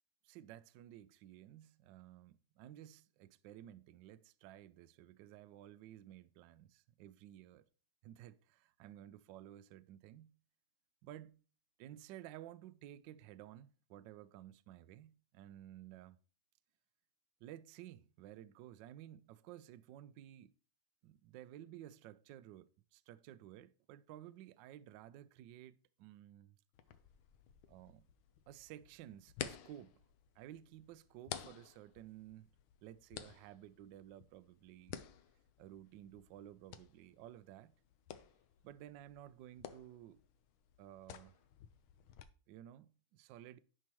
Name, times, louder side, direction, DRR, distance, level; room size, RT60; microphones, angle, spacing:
voice 1, 0.2-7.7 8.0-10.4 11.0-11.4 11.8-16.2 17.4-20.6 21.0-26.5 27.7-28.0 28.5-30.0 30.4-32.5 32.8-35.0 35.6-37.7 38.6-40.2 40.8-41.4 42.5-43.6, right 12 dB, 75° right, 1.1 m, -54 dB
sound 1, 26.7-42.2, left 10 dB, 75° left, 1.5 m, -53 dB
11.0 x 5.6 x 3.0 m
omnidirectional pair, 2.3 m